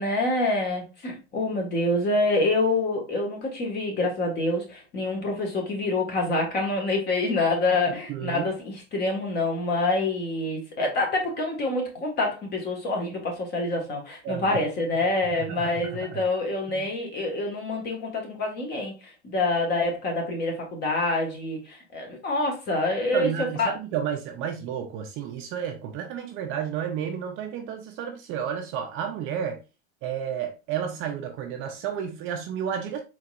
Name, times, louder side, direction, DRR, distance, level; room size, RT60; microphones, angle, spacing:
voice 1, 0.0-18.9 19.2-23.3 23.6-23.7, left 2 dB, 30° left, 1.7 m, -26 dB
voice 2, 8.1-8.5 14.2-14.6 15.0-15.1 15.3-16.2 16.8-16.9 23.1-29.6 30.0-33.0, right 8 dB, 35° right, 0.7 m, -31 dB
4.3 x 4.3 x 2.5 m
supercardioid pair, 135°, 34 cm